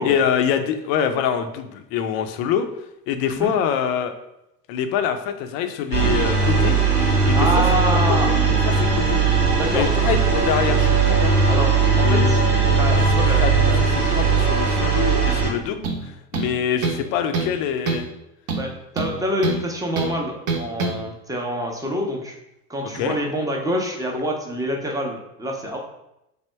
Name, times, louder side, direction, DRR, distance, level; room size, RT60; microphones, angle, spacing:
voice 1, 0.0-2.7 3.1-4.1 4.7-6.8 7.3-7.5 8.3-9.2 9.7-11.3 11.9-12.4 13.0-13.1 13.4-13.5 13.8-18.1 22.8-23.2, left 8 dB, 50° left, 7 dB, 0.5 m, -25 dB
sound 1, 5.9-15.5, right 5 dB, 90° right, 1.1 m, -18 dB
voice 2, 7.4-8.3 9.6-9.9 11.5-12.4 12.8-13.8 18.5-22.3 22.7-25.8, equal, 10° right, 0 dB, 0.6 m, -26 dB
sound 2, 15.8-16.0 16.3-17.1 17.3-17.6 17.9-18.1 18.5-19.6 20.0-20.1 20.5-21.0, right 4 dB, 45° right, 0.8 m, -25 dB
3.4 x 2.1 x 4.3 m, 0.87 s
hypercardioid pair, 75°, 46 cm